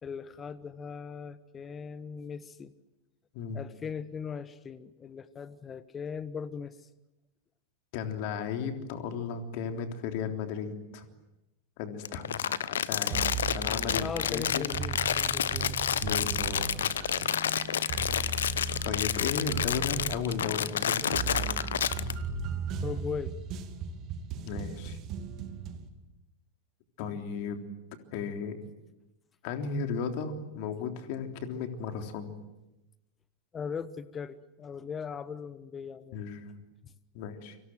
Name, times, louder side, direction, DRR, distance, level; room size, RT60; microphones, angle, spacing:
voice 1, 0.0-2.7 3.5-6.8 14.0-15.9 22.8-23.3 33.5-36.2, left 6 dB, 20° left, 16 dB, 1.2 m, -39 dB
voice 2, 7.9-11.1 11.8-14.7 16.0-16.9 17.2-17.3 18.8-21.7 24.4-25.0 27.0-27.6 28.1-28.6 29.4-32.4 36.1-36.6 37.1-37.6, left 6 dB, 45° left, 5 dB, 3.5 m, -35 dB
Crumpling crinkling, 12.0-22.1, left 9 dB, 65° left, 1.0 m, -29 dB
sound 1, 13.1-25.9, right 5 dB, 35° right, 2.9 m, -37 dB
29.5 x 25.5 x 7.7 m, 0.97 s
figure-of-eight pair, 90°, 0 cm